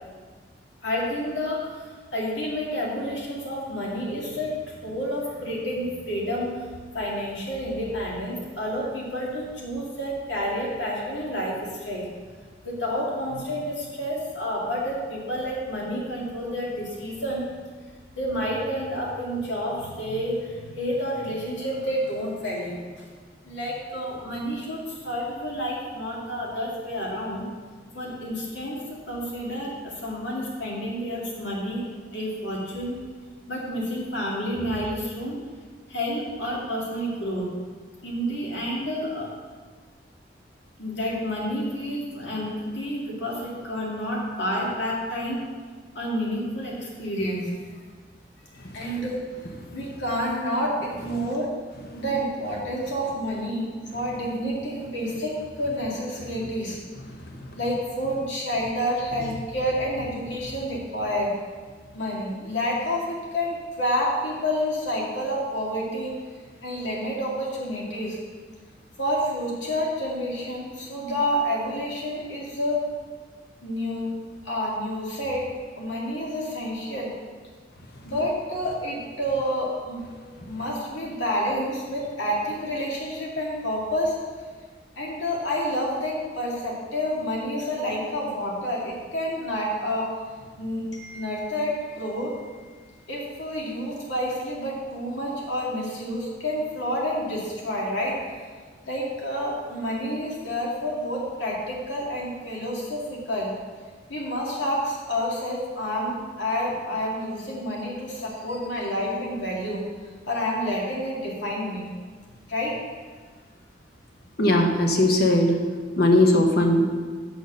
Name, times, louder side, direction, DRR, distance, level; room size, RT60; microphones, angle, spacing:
voice 1, 0.8-6.6 6.9-12.1 12.6-17.5 18.2-23.1 23.4-27.4 27.9-28.8 29.1-31.9 32.1-33.0 33.5-35.4 35.9-37.5 38.0-39.3 40.8-45.4 45.9-47.5 48.7-49.3 49.7-51.5 52.0-56.8 57.6-61.4 61.9-66.2 66.6-68.2 69.0-72.9 73.6-74.1 74.4-77.1 78.0-80.1 80.5-84.2 85.0-90.1 90.6-92.8 93.1-98.3 98.9-103.5 104.1-109.8 110.3-111.9 112.5-112.8, equal, 80° left, -3 dB, 2.3 m, -29 dB
voice 2, 57.1-57.5 80.1-80.3 114.4-115.6 116.0-117.0, left 1 dB, 60° left, 3 dB, 1.0 m, -20 dB
6.7 x 6.4 x 6.4 m, 1.5 s
head